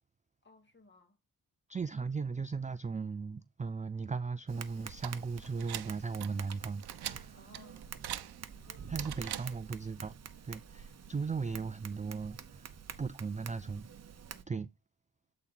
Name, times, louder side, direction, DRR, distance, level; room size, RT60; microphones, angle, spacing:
voice 1, 0.4-1.2 7.3-8.0 8.5-9.7, left 3 dB, 30° left, 2.2 m, -60 dB
voice 2, 1.7-7.4 8.9-10.2 10.4-12.6 13.0-13.9 14.5-14.7, right 5 dB, 20° right, 0.3 m, -37 dB
Tap, 4.5-14.4, right 7 dB, 40° right, 0.8 m, -48 dB
sound 1, 4.9-9.9, right 11 dB, 80° right, 0.7 m, -44 dB
8.3 x 4.3 x 3.9 m
wide cardioid pair, 100°, 38 cm